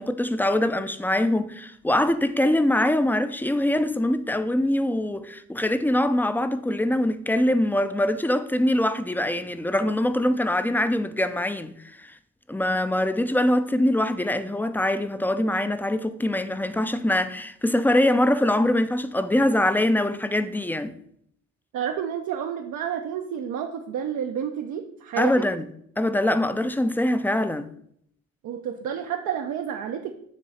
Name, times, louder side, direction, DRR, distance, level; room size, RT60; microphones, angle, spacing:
voice 1, 0.0-12.2 12.5-21.0 25.2-25.7 26.0-27.7, left 1 dB, 5° left, 0.4 m, -23 dB
voice 2, 21.7-25.5 28.4-30.1, right 8 dB, 75° right, 0.6 m, -30 dB
7.3 x 3.1 x 5.6 m
cardioid pair, 90°, 30 cm